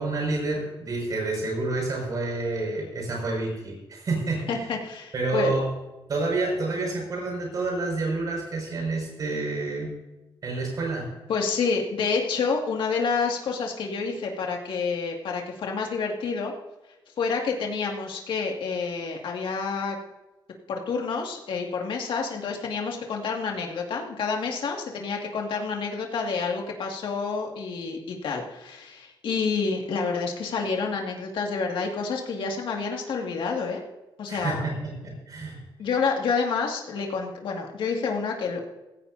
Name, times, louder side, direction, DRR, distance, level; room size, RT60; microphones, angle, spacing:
voice 1, 0.0-4.5 5.1-5.7 6.1-9.9 10.4-11.1 34.3-35.6, right 3 dB, 45° right, -1 dB, 5.8 m, -28 dB
voice 2, 4.5-5.5 11.3-16.5 17.2-20.0 20.7-33.8 34.2-34.6 35.8-38.7, left 5 dB, 80° left, 1 dB, 2.2 m, -28 dB
16.5 x 16.0 x 2.8 m, 1.0 s
wide cardioid pair, 175°, 8 cm